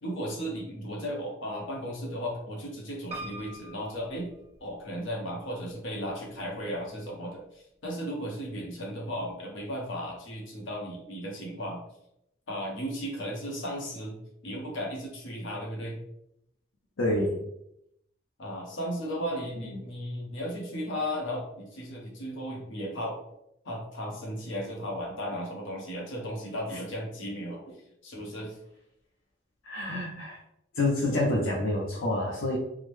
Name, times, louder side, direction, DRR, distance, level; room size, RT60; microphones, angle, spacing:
voice 1, 0.0-4.3 4.6-11.8 12.5-14.2 14.4-16.0 18.4-23.2 23.6-27.8 28.0-28.6, equal, 70° left, -2 dB, 1.0 m, -35 dB
Piano, 3.1-5.1 5.7-6.4 6.7-6.8 7.0-7.1, right 1 dB, 35° right, 0.8 m, -44 dB
voice 2, 17.0-17.5 29.6-30.4 30.8-32.6, left 1 dB, 90° left, -3 dB, 0.6 m, -27 dB
3.7 x 2.1 x 3.1 m, 0.80 s
head